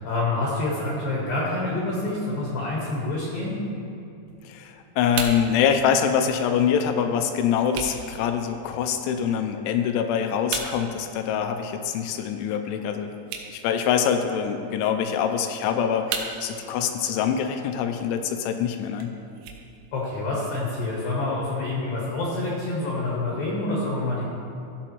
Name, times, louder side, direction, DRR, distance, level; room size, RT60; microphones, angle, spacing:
voice 1, 0.0-3.6 19.9-24.3, left 2 dB, 65° left, -4 dB, 2.4 m, -27 dB
sound 1, 4.3-20.3, right 6 dB, 90° right, 3.2 m, -40 dB
voice 2, 4.5-13.1 13.5-19.1, left 8 dB, 85° left, 6 dB, 2.8 m, -24 dB
15.0 x 8.0 x 3.0 m, 2.6 s
omnidirectional pair, 5.6 m